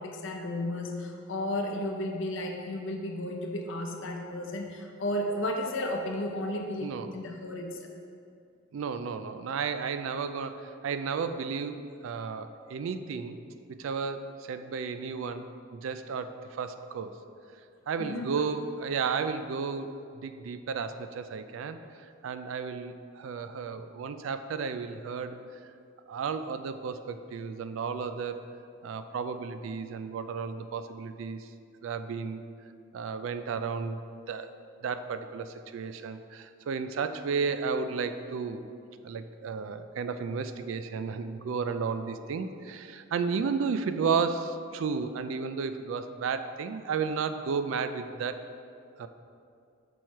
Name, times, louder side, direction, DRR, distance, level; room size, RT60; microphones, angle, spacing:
voice 1, 0.0-7.8 18.0-18.3, left 1 dB, 65° left, 3 dB, 0.7 m, -33 dB
voice 2, 6.8-7.1 8.7-13.4 13.7-15.5 15.7-17.2 17.9-25.5 26.1-28.5 28.8-31.5 31.8-32.4 32.9-34.0 34.3-34.5 34.8-38.6 39.0-48.5 49.0-49.1, right 5 dB, 70° right, 10 dB, 0.3 m, -33 dB
6.2 x 4.4 x 4.5 m, 2.4 s
head